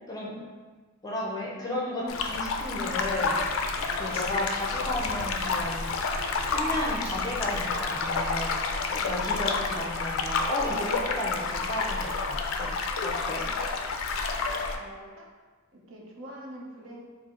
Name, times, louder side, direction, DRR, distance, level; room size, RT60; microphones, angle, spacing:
voice 1, 1.0-3.6 4.0-5.9 6.5-12.7 13.0-13.5, left 1 dB, 20° left, -4 dB, 0.6 m, -33 dB
sound 1, 2.1-14.8, left 4 dB, 75° left, 0.3 m, -29 dB
Rain, 2.9-8.3, equal, 10° right, 1.2 m, -47 dB
voice 2, 14.7-15.3 15.7-17.0, right 1 dB, 70° right, -3 dB, 0.7 m, -44 dB
4.4 x 2.0 x 3.6 m, 1.4 s
head